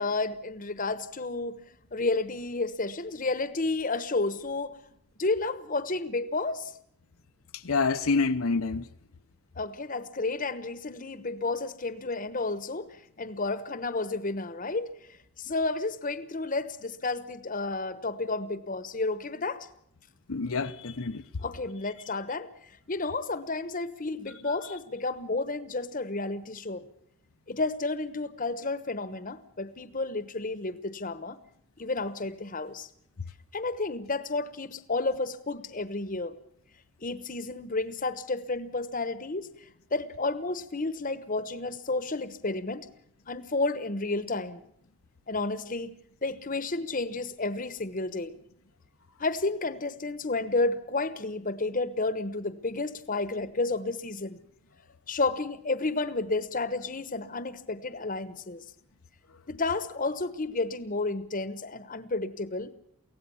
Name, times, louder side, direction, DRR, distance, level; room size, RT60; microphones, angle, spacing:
voice 1, 0.0-1.6 1.9-4.8 5.2-6.7 9.6-14.9 15.4-19.7 21.4-22.5 22.9-26.8 27.5-31.4 31.8-32.9 33.5-36.4 37.0-42.9 43.3-44.6 45.3-45.9 46.2-48.3 49.2-54.4 55.1-58.6 59.5-62.7, left 3 dB, 40° left, 1.1 m, -31 dB
voice 2, 7.6-8.8 20.3-21.2 24.5-24.6, left 4 dB, 75° left, 0.8 m, -27 dB
24.0 x 17.0 x 7.1 m
head